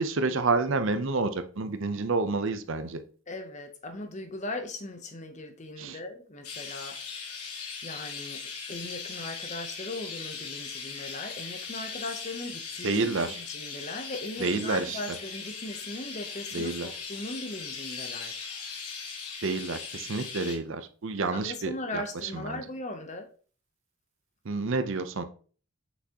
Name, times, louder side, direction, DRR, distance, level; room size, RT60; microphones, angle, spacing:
voice 1, 0.0-3.0 5.8-6.0 12.8-13.4 14.4-15.0 16.5-16.9 19.4-22.6 24.4-25.2, right 3 dB, 55° right, 0.6 m, -29 dB
voice 2, 3.3-7.0 7.8-8.4 8.7-18.4 21.3-23.3, left 2 dB, 30° left, 0.7 m, -38 dB
Chirp tweet, 6.4-20.6, left 5 dB, 90° left, 1.5 m, -39 dB
6.1 x 5.8 x 2.9 m
head